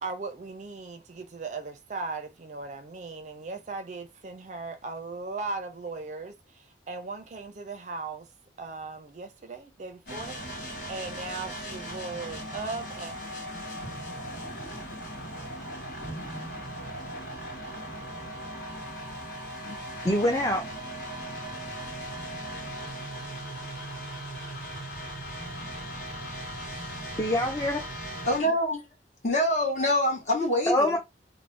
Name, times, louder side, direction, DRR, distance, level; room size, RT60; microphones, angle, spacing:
voice 1, 0.0-8.3 8.6-10.4 10.9-13.1, right 3 dB, 40° right, 0.4 m, -38 dB
sound 1, 10.1-28.4, equal, 60° left, 1.3 m, -38 dB
voice 2, 20.0-20.6 27.2-27.8 30.7-31.0, left 1 dB, 20° left, 0.4 m, -25 dB
voice 3, 28.3-28.9 29.2-31.0, left 1 dB, 40° left, 1.0 m, -25 dB
2.5 x 2.0 x 3.2 m
head